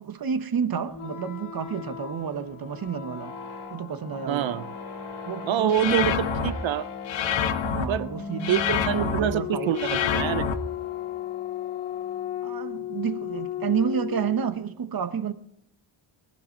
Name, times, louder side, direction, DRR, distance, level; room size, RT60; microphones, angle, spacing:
voice 1, 0.0-3.4 3.7-4.6 5.2-6.1 7.8-8.6 8.9-9.8 12.4-15.3, right 7 dB, 45° right, 1.2 m, -30 dB
sound 1, 0.9-14.7, left 9 dB, 85° left, 2.3 m, -36 dB
voice 2, 4.3-4.7 5.5-6.9 7.9-8.1 8.5-10.5, right 10 dB, 65° right, 0.9 m, -26 dB
sound 2, 5.7-6.5 7.1-7.9 8.4-9.2 9.8-10.5, left 7 dB, 60° left, 1.5 m, -26 dB
19.5 x 12.5 x 4.5 m
cardioid pair, 90°, 49 cm